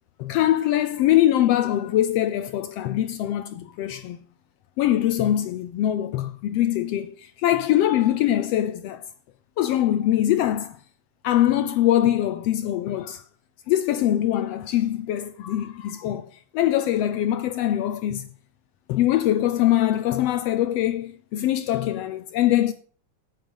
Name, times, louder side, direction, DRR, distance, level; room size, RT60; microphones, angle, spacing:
voice 1, 0.2-4.2 4.8-9.0 9.6-10.8 11.2-13.2 13.7-18.3 18.9-22.7, left 12 dB, 75° left, 1.5 m, -23 dB
9.0 x 8.3 x 5.5 m
omnidirectional pair, 3.3 m